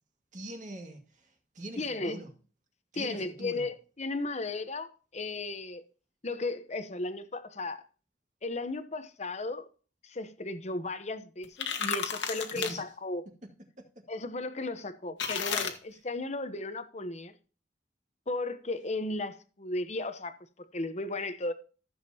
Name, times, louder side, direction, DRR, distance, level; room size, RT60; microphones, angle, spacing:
voice 1, 0.3-2.3 2.9-3.7 12.5-12.8 13.4-13.5 13.8-14.1 15.9-16.0, right 1 dB, 45° right, 2.1 m, -43 dB
voice 2, 1.8-2.2 2.9-5.8 6.2-7.8 8.4-9.7 10.0-13.2 14.1-17.3 18.3-21.5, left 2 dB, 40° left, 0.9 m, -35 dB
sound 1, 11.4-12.7 15.2-15.7, left 6 dB, 80° left, 1.6 m, -32 dB
14.5 x 7.4 x 2.9 m
head